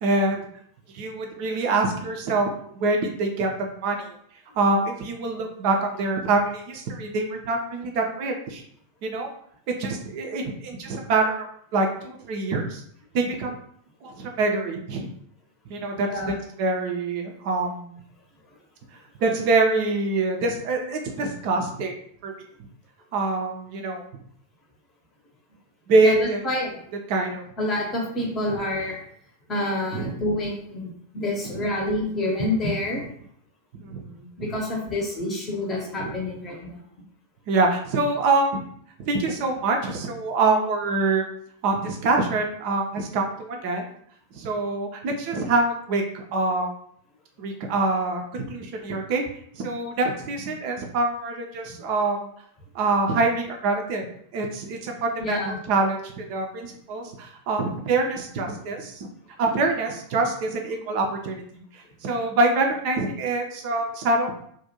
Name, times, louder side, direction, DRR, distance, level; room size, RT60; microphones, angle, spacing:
voice 1, 0.0-0.4 0.9-2.5 2.8-3.5 3.8-4.1 4.6-8.6 9.0-9.3 9.7-11.5 11.7-12.8 13.1-13.6 14.0-15.1 15.7-18.0 19.2-21.9 22.2-22.3 23.1-24.0 25.9-26.4 27.1-27.4 29.9-30.1 31.5-31.6 33.8-34.5 36.0-36.2 37.5-38.6 39.0-41.2 41.6-43.9 44.3-46.7 47.4-49.3 49.5-52.3 52.7-54.1 54.3-59.1 59.4-64.5, right 3 dB, 45° right, 2 dB, 0.4 m, -25 dB
voice 2, 26.0-26.8 27.6-29.0 29.5-33.0 34.4-36.8 51.7-51.8 55.2-55.6, left 1 dB, 25° left, -1 dB, 0.7 m, -28 dB
2.4 x 2.1 x 2.8 m, 0.66 s
figure-of-eight pair, 90°, 0 cm